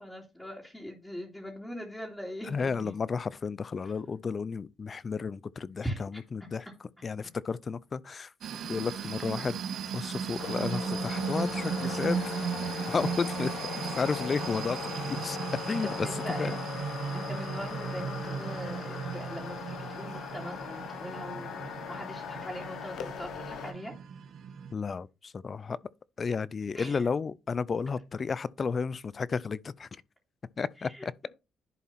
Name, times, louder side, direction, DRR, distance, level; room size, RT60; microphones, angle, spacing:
voice 1, 0.0-2.9 5.8-6.2 8.6-8.7 15.8-16.6 17.1-23.9 26.7-27.1 30.8-31.3, equal, 10° left, 2.9 m, -41 dB
voice 2, 2.5-6.7 7.0-8.3 8.7-9.6 9.9-12.4 12.9-15.4 15.7-16.1 16.4-16.5 24.7-25.8 26.2-29.9 30.6-31.1, left 5 dB, 40° left, 0.5 m, -32 dB
sound 1, 8.4-24.7, right 7 dB, 70° right, 1.3 m, -36 dB
sound 2, 10.4-23.7, left 7 dB, 75° left, 1.1 m, -39 dB
11.0 x 4.3 x 4.2 m
cardioid pair, 90°, 0 cm